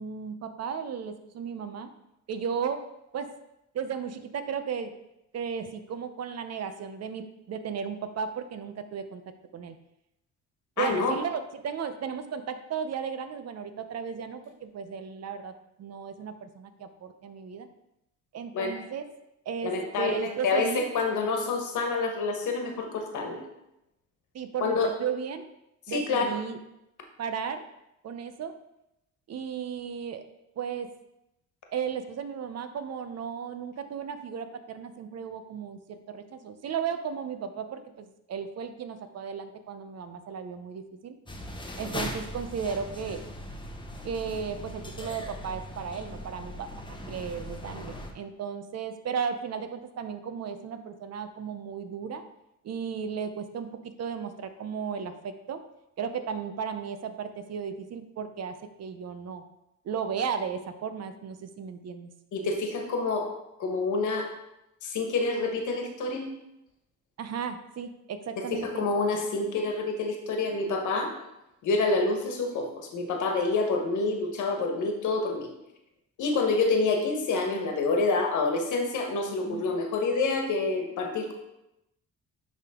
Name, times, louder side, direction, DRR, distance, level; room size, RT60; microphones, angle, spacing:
voice 1, 0.0-1.9 2.3-2.9 3.1-3.3 3.7-4.9 5.3-9.2 9.5-9.8 10.8-15.5 15.8-17.7 18.3-19.0 19.5-21.1 24.3-25.4 25.9-26.6 27.2-27.6 28.0-28.5 29.3-30.2 30.6-30.9 31.7-41.2 41.8-43.2 44.0-52.2 52.6-55.6 56.0-59.4 59.8-62.1 67.2-68.8 79.4-79.7, right 6 dB, 55° right, 9 dB, 0.7 m, -35 dB
voice 2, 10.8-11.1 18.5-18.7 19.6-20.7 20.9-23.4 24.6-24.9 25.9-26.2 62.3-63.3 63.6-64.3 64.8-66.3 68.4-71.1 71.6-75.5 76.2-81.3, left 3 dB, 75° left, 3 dB, 1.4 m, -27 dB
sound 1, 41.3-48.1, left 1 dB, 15° left, 1.0 m, -39 dB
10.5 x 3.6 x 3.7 m, 0.86 s
cardioid pair, 90°, 30 cm